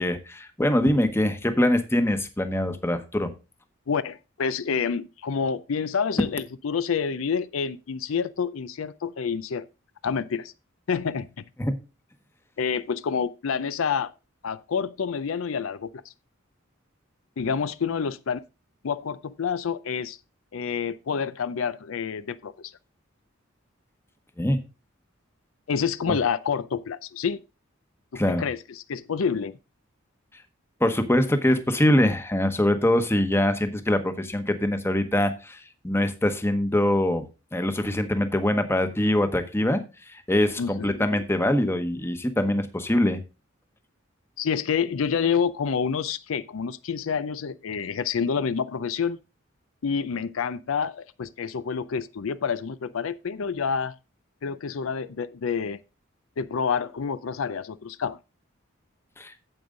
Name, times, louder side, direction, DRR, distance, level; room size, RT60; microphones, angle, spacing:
voice 1, 0.0-3.3 11.6-11.8 24.4-24.6 26.1-26.2 28.1-28.4 30.8-37.3 37.5-39.8 40.3-43.2 59.2-59.3, left 1 dB, 10° left, 1.0 m, -23 dB
voice 2, 3.9-9.7 10.0-10.5 10.9-11.3 12.6-14.1 14.4-15.9 17.4-18.4 18.8-20.2 20.5-22.5 25.7-27.4 28.1-29.6 40.6-41.2 44.4-49.2 49.8-53.9 54.4-55.8 56.4-58.2, left 6 dB, 75° left, 0.5 m, -28 dB
8.9 x 7.8 x 3.8 m
head